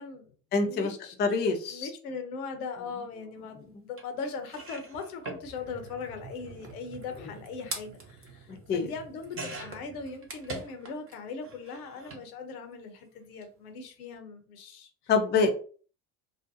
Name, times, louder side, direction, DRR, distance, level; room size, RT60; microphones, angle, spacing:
voice 1, 0.0-0.3 0.6-1.1 1.7-14.9, left 4 dB, 75° left, 6 dB, 0.7 m, -40 dB
voice 2, 0.5-0.9 1.2-1.9 8.7-8.9 15.1-15.5, left 4 dB, 25° left, 3 dB, 0.4 m, -25 dB
sound 1, 4.0-4.1 4.4-11.2 11.4-12.2 13.3-13.4 13.7-13.8, right 3 dB, 30° right, 0.7 m, -43 dB
2.4 x 2.1 x 2.6 m, 0.41 s
hypercardioid pair, 65°, 46 cm